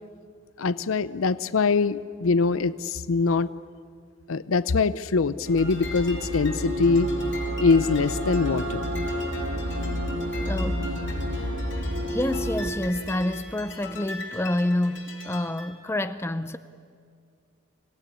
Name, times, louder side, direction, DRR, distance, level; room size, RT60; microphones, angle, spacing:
voice 1, 0.6-3.5 4.3-7.1 7.6-8.9, left 4 dB, 80° left, 0.6 m, -23 dB
sound 1, 5.4-15.7, left 3 dB, 55° left, 3.4 m, -42 dB
sound 2, 5.5-12.7, equal, 75° right, 2.8 m, -29 dB
voice 2, 10.5-10.9 11.1-11.5 12.1-16.6, left 1 dB, 10° left, 0.5 m, -28 dB
25.0 x 16.5 x 9.9 m
head